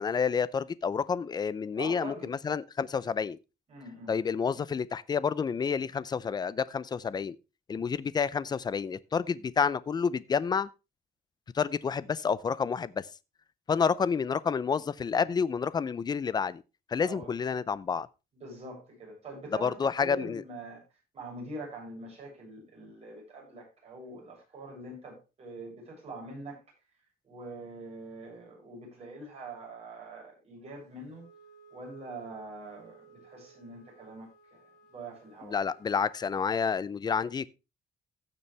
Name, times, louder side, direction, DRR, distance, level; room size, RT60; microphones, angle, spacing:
voice 1, 0.0-3.4 4.1-7.4 7.7-10.7 11.5-13.1 13.7-16.6 16.9-18.1 19.6-20.4 35.4-37.5, left 6 dB, 25° left, 0.5 m, -29 dB
voice 2, 1.8-2.3 3.7-4.1 17.0-17.3 18.3-20.8 21.1-26.6 27.2-31.2 31.7-34.6 34.9-35.6, right 2 dB, 40° right, 7.5 m, -44 dB
Wind instrument woodwind instrument, 31.1-36.4, right 4 dB, 90° left, 2.8 m, -58 dB
16.0 x 7.0 x 3.3 m
cardioid pair, 155°, 16 cm